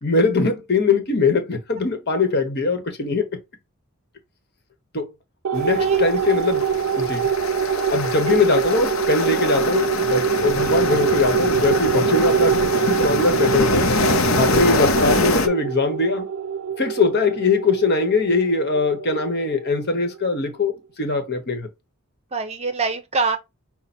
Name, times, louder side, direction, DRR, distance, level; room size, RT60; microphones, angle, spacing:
voice 1, 0.0-3.4 4.9-5.1 5.5-6.6 7.0-7.3 7.9-13.9 14.4-16.3 16.8-21.7, left 3 dB, 50° left, 1.2 m, -21 dB
sound 1, 5.4-20.2, right 7 dB, 85° right, 0.4 m, -24 dB
sound 2, 5.6-15.5, left 3 dB, 70° left, 0.7 m, -24 dB
voice 2, 22.3-23.4, right 3 dB, 30° right, 0.7 m, -24 dB
5.7 x 2.2 x 4.2 m
head